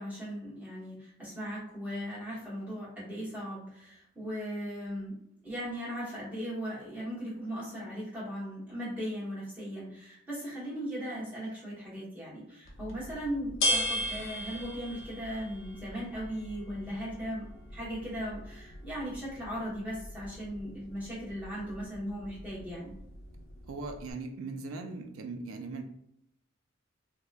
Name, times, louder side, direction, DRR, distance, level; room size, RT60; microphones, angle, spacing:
voice 1, 0.0-5.2 5.4-17.4 17.7-22.9, equal, 5° right, -9 dB, 1.1 m, -38 dB
sound 1, 12.6-24.1, equal, 70° left, 0.7 m, -38 dB
voice 2, 23.7-25.8, right 3 dB, 80° right, 4 dB, 0.4 m, -39 dB
2.7 x 2.2 x 2.3 m, 0.77 s
head